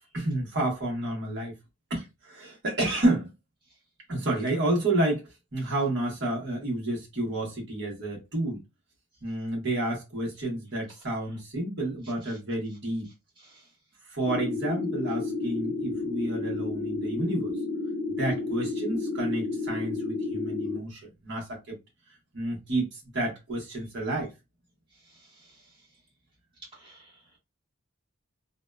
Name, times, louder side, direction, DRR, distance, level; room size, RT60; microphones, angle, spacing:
voice 1, 0.1-1.5 1.9-3.3 4.1-8.6 9.2-13.1 14.1-17.5 18.1-21.7 22.3-24.3, right 1 dB, 55° right, 1.0 m, -30 dB
voice 2, 13.4-13.7 25.0-25.7 26.7-27.2, right 2 dB, 25° right, 1.3 m, -56 dB
sound 1, 14.2-20.8, left 3 dB, 80° left, 0.8 m, -31 dB
2.7 x 2.2 x 2.2 m
head